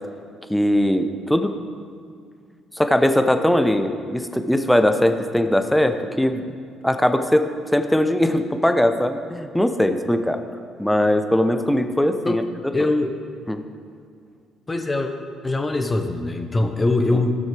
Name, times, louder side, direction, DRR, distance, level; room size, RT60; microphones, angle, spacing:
voice 1, 0.5-1.5 2.7-6.5 6.8-7.4 7.7-10.4 10.8-12.4 13.5-13.6, left 1 dB, 5° left, 7 dB, 0.8 m, -20 dB
voice 2, 12.7-13.1 14.7-15.1 15.4-17.4, left 2 dB, 25° left, 5 dB, 1.1 m, -22 dB
16.0 x 6.3 x 3.4 m, 2.2 s
hypercardioid pair, 50°, 0 cm